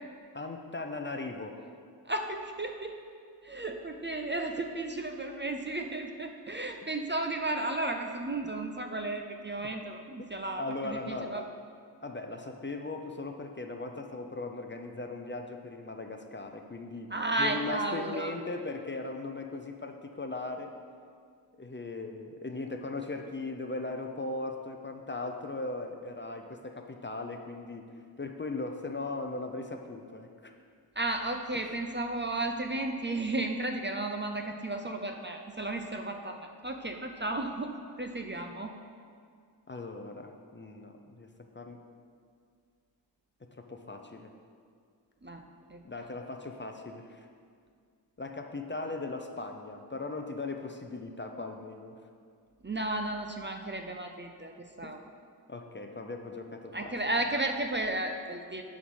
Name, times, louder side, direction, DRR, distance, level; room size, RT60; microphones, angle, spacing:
voice 1, 0.3-1.6 10.6-11.5 12.0-17.1 17.4-20.7 21.6-27.9 28.2-30.5 39.7-41.3 41.5-41.8 43.6-44.3 45.8-47.3 48.2-52.0 54.8-54.9 55.5-57.0, left 2 dB, 25° left, 4 dB, 0.6 m, -38 dB
voice 2, 2.0-3.0 3.4-11.4 17.1-18.3 31.0-38.7 45.2-45.4 45.7-45.8 52.6-55.0 56.7-58.6, right 2 dB, 25° right, 4 dB, 0.5 m, -34 dB
9.8 x 3.7 x 6.2 m, 2.1 s
wide cardioid pair, 75°, 43 cm